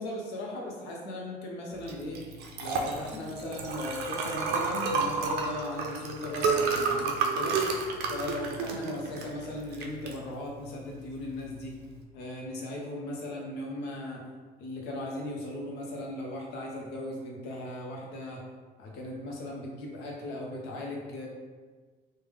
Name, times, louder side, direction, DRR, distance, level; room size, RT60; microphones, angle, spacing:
voice 1, 0.0-2.2 2.6-7.6 8.1-11.7 12.1-14.2 14.6-18.4 18.8-21.3, left 1 dB, 85° left, -1 dB, 0.7 m, -37 dB
Liquid, 1.8-12.0, right 4 dB, 75° right, 0.5 m, -31 dB
3.3 x 2.1 x 3.4 m, 1.4 s
cardioid pair, 110°, 17 cm